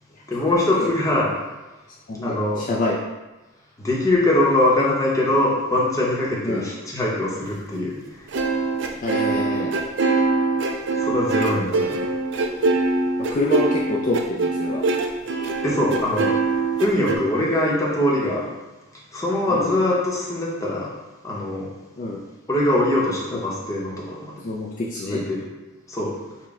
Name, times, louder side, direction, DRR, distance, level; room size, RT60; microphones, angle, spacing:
voice 1, 0.3-1.3 2.2-2.6 3.8-7.9 11.0-12.0 15.6-16.3 16.8-18.5 19.1-20.9 21.2-21.7 22.5-24.3 25.0-25.5 25.9-26.1, left 1 dB, 15° left, -4 dB, 0.8 m, -22 dB
voice 2, 2.1-3.0 6.4-6.7 9.0-9.7 11.8-12.1 13.2-14.8 19.5-19.7 22.0-22.2 23.3-23.4 24.4-25.2, left 2 dB, 40° left, -4 dB, 0.4 m, -27 dB
sound 1, 8.3-17.1, right 3 dB, 55° right, 0.4 m, -23 dB
5.8 x 2.2 x 3.6 m, 1.1 s
head